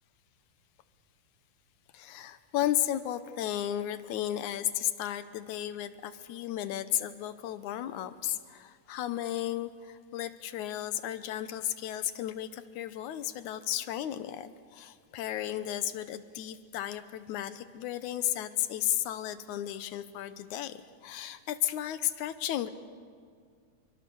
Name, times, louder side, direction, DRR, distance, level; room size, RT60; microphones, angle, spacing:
voice 1, 1.9-22.7, left 12 dB, 85° left, 12 dB, 2.3 m, -34 dB
27.0 x 24.0 x 7.0 m, 2.1 s
omnidirectional pair, 3.4 m